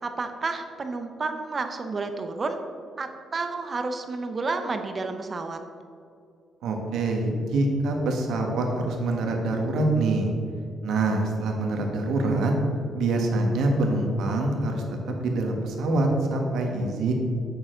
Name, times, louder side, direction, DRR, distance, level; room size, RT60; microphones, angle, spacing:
voice 1, 0.0-2.6 3.0-5.6, right 3 dB, 35° right, 6 dB, 0.7 m, -30 dB
voice 2, 6.6-10.3 10.8-12.5 12.9-14.8 15.2-17.1, right 2 dB, 75° right, 2 dB, 1.4 m, -25 dB
8.7 x 6.5 x 3.8 m, 2.4 s
cardioid pair, 90°, 0 cm